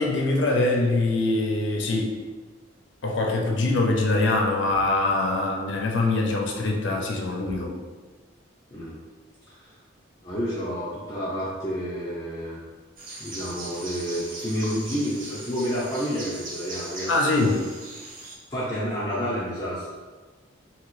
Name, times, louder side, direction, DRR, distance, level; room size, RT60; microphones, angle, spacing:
voice 1, 0.0-2.2 3.0-7.8 17.1-17.6, left 2 dB, 70° left, 1 dB, 0.5 m, -23 dB
voice 2, 10.2-12.6 13.2-17.1 18.5-19.9, equal, 20° left, -11 dB, 0.6 m, -29 dB
sound 1, 13.0-18.3, right 2 dB, 45° right, 0.7 m, -39 dB
2.9 x 2.8 x 3.0 m, 1.4 s
head